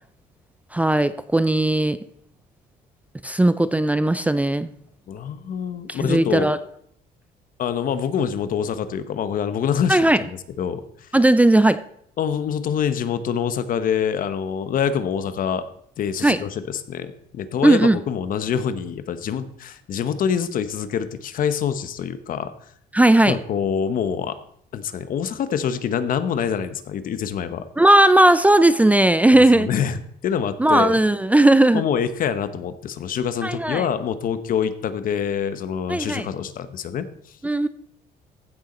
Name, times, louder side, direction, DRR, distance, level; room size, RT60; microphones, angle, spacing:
voice 1, 0.7-2.0 3.2-4.7 5.9-6.6 9.9-10.2 11.1-11.8 16.2-16.4 17.6-18.0 22.9-23.4 27.8-29.7 30.6-31.8 33.4-33.8 35.9-36.3 37.4-37.7, right 1 dB, 10° right, 13 dB, 0.5 m, -17 dB
voice 2, 5.1-6.5 7.6-10.3 10.6-11.1 12.2-15.6 16.0-22.5 23.3-24.4 24.7-27.6 29.6-31.0 31.7-37.4, left 7 dB, 55° left, 12 dB, 1.0 m, -25 dB
15.5 x 6.5 x 4.3 m, 0.68 s
cardioid pair, 110°, 17 cm